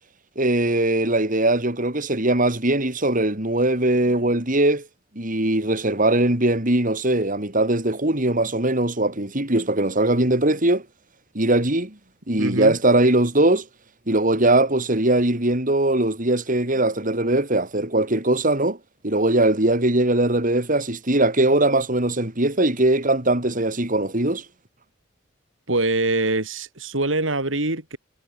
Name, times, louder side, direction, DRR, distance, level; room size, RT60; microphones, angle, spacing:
voice 1, 0.4-4.9 5.1-10.8 11.3-11.9 12.3-13.6 14.1-18.8 19.0-24.4, right 1 dB, 45° right, 4.7 m, -20 dB
voice 2, 12.4-12.7 25.7-28.0, right 2 dB, 85° right, 4.5 m, -24 dB
head